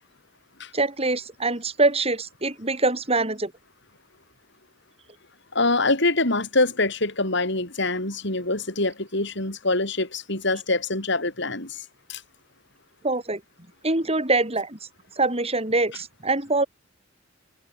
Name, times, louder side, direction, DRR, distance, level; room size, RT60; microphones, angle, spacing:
voice 1, 0.7-3.5 13.0-13.4 13.8-14.8 15.2-16.7, right 2 dB, 30° right, 5.5 m, -24 dB
voice 2, 5.5-12.2, left 2 dB, 60° left, 7.7 m, -25 dB
head